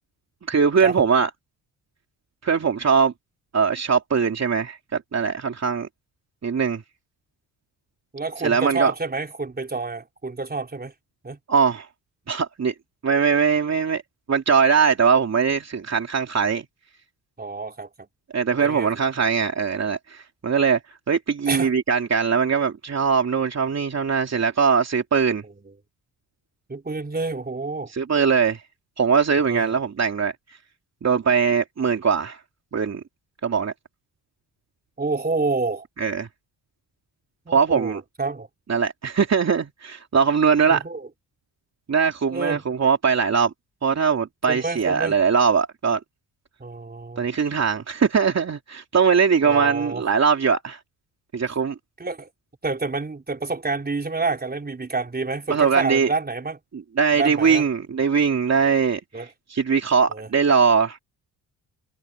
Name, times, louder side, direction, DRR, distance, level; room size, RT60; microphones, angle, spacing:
voice 1, 0.5-1.3 2.4-3.1 3.5-5.9 6.4-6.8 8.4-8.9 11.5-11.9 12.3-12.7 13.0-14.0 14.3-16.6 18.3-20.8 21.1-25.4 27.9-28.6 29.0-30.3 31.0-32.4 32.7-33.0 33.4-33.7 36.0-36.3 37.5-38.0 38.7-40.8 41.9-43.5 43.8-46.0 47.2-50.8 51.3-51.7 55.5-56.1 56.7-59.2 59.5-61.0, right 6 dB, 40° right, 3.1 m, -21 dB
voice 2, 8.1-10.9 11.2-11.4 17.4-18.1 18.5-18.9 21.5-21.7 25.4-25.5 26.7-27.9 29.5-29.8 35.0-35.8 37.5-38.5 40.7-41.1 42.3-42.6 44.5-45.2 46.6-47.3 49.4-50.0 52.0-52.3 52.6-56.6 57.1-57.6 59.1-59.3 60.1-60.3, right 3 dB, 25° right, 4.4 m, -28 dB
cardioid pair, 80°, 39 cm